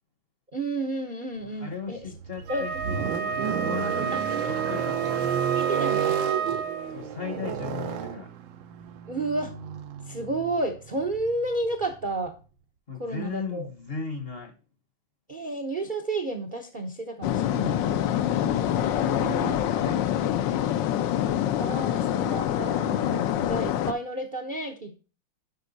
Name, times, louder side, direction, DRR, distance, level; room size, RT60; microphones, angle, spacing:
voice 1, 0.5-2.0 2.5-3.1 4.1-4.2 5.5-6.2 9.1-9.5 10.1-12.3 13.0-13.6 15.3-19.6 21.6-25.0, right 2 dB, 50° right, 0.6 m, -32 dB
voice 2, 1.4-5.3 6.9-8.3 12.9-14.6 19.0-21.0, left 5 dB, 40° left, 0.9 m, -37 dB
sound 1, 2.0-12.3, right 9 dB, 85° right, 1.5 m, -32 dB
Wind instrument woodwind instrument, 2.4-7.0, right 5 dB, 65° right, 1.4 m, -31 dB
sound 2, 17.2-23.9, left 11 dB, 80° left, 1.3 m, -26 dB
8.2 x 5.2 x 4.0 m
omnidirectional pair, 2.1 m